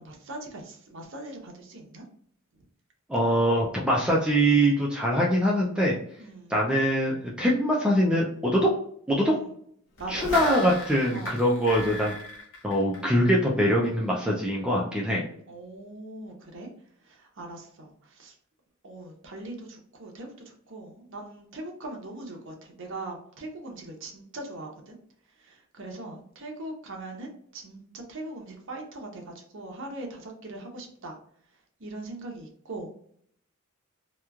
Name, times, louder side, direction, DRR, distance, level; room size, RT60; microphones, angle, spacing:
voice 1, 0.0-2.0 2.5-2.6 6.2-6.5 9.2-9.5 10.0-10.3 11.1-11.4 15.5-16.7 17.0-18.3 18.8-25.0 25.4-31.1 31.8-32.9, right 2 dB, 60° right, 1 dB, 0.7 m, -41 dB
voice 2, 3.1-5.9 6.5-8.7 9.1-9.4 10.1-12.1 12.6-15.2, equal, 5° right, -4 dB, 0.4 m, -23 dB
sound 1, 10.0-13.5 13.8-13.9, left 2 dB, 60° left, 0.8 m, -37 dB
2.9 x 2.3 x 2.3 m, 0.64 s
head